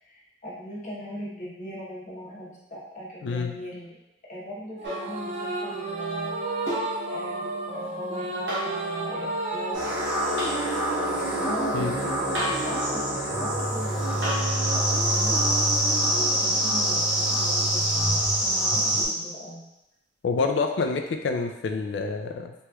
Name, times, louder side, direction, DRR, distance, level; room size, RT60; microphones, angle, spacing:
voice 1, 0.0-4.0 4.3-6.4 7.1-9.9 10.9-14.3 14.7-15.4 16.1-19.6, equal, 45° left, -7 dB, 1.0 m, -39 dB
voice 2, 3.2-3.6 11.7-11.9 20.2-22.5, left 4 dB, 70° left, 5 dB, 0.3 m, -27 dB
sound 1, 4.8-18.4, right 2 dB, 40° right, 0.4 m, -34 dB
sound 2, 4.8-5.1 6.7-7.0 8.5-8.8 10.4-10.6 12.3-12.7 14.2-14.5 16.3-16.4, right 1 dB, 80° right, 0.9 m, -31 dB
sound 3, 9.7-19.1, right 1 dB, 10° right, 1.3 m, -25 dB
3.1 x 3.0 x 2.3 m, 0.94 s
head